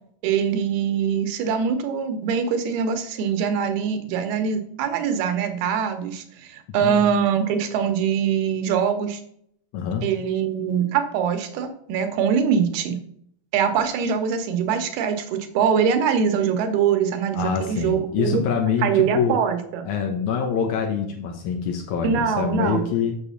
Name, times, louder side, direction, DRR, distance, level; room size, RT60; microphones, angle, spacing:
voice 1, 0.2-9.2 10.0-13.0 13.5-18.4 18.8-19.9 22.0-22.9, right 7 dB, 80° right, 7 dB, 2.9 m, -23 dB
voice 2, 9.7-10.1 17.3-19.4 19.8-23.1, left 6 dB, 80° left, 3 dB, 1.7 m, -25 dB
7.2 x 6.6 x 5.7 m, 0.67 s
omnidirectional pair, 4.6 m